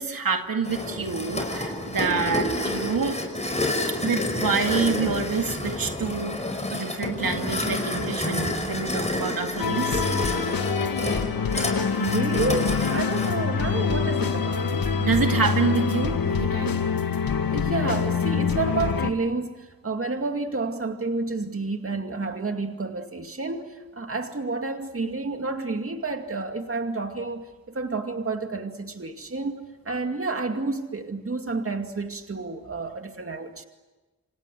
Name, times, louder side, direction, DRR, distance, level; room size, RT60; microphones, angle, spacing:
voice 1, 0.0-3.2 4.0-6.4 6.7-10.0 15.0-16.8, right 5 dB, 80° right, 4 dB, 2.3 m, -27 dB
sound 1, 0.6-13.3, left 1 dB, 20° left, 5.4 m, -29 dB
sound 2, 9.6-19.1, left 6 dB, 85° left, 1.8 m, -25 dB
voice 2, 12.0-14.7 17.5-33.6, right 3 dB, 40° right, 5 dB, 2.3 m, -30 dB
29.0 x 26.0 x 7.8 m, 1.2 s
wide cardioid pair, 115°, 34 cm